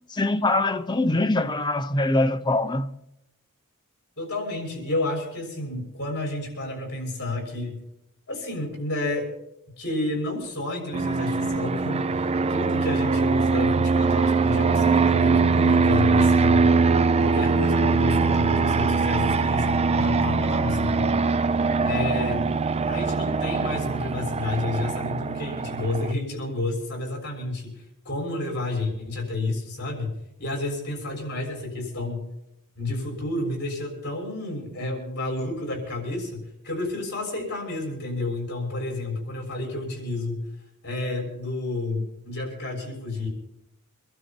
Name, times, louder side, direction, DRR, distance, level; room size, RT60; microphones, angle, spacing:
voice 1, 0.1-2.9, left 2 dB, 20° left, 0.8 m, -23 dB
voice 2, 4.2-7.8 8.3-9.3 9.8-16.7 17.2-21.1 21.8-22.5 22.9-27.7 28.0-30.1 30.4-32.2 32.7-40.5 40.8-43.3, left 2 dB, 50° left, 6.4 m, -30 dB
Fixed-wing aircraft airplane, 10.9-26.1, right 4 dB, 30° right, 0.5 m, -22 dB
24.0 x 12.5 x 4.5 m
head